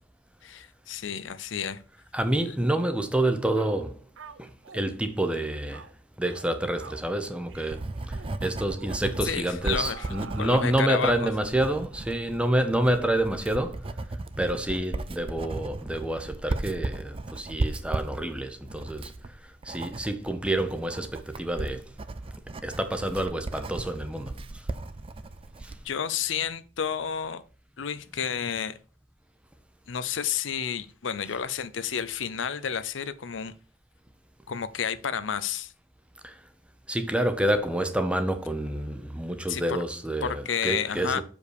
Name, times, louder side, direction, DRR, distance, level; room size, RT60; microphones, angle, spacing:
voice 1, 0.4-1.8 2.5-2.6 9.2-10.1 10.4-11.3 25.8-27.4 27.8-28.8 29.9-33.5 34.5-35.7 39.5-39.6 40.2-41.2, left 7 dB, 80° left, 0.6 m, -31 dB
voice 2, 2.1-3.9 4.4-5.8 6.2-13.8 14.4-19.1 19.6-21.9 22.6-24.3 25.6-25.7 36.2-36.4 36.9-41.2, right 1 dB, 5° right, 0.8 m, -28 dB
sound 1, 3.0-3.2 3.6-3.8 4.2-4.9 5.2-5.4 5.7-5.9 6.2-6.5 6.8-7.1 7.5-7.8 8.1-8.3 8.8-9.0 9.6-11.7, right 5 dB, 90° right, 0.7 m, -45 dB
Writing, 7.1-25.9, right 2 dB, 30° right, 0.5 m, -36 dB
6.8 x 5.2 x 4.8 m
head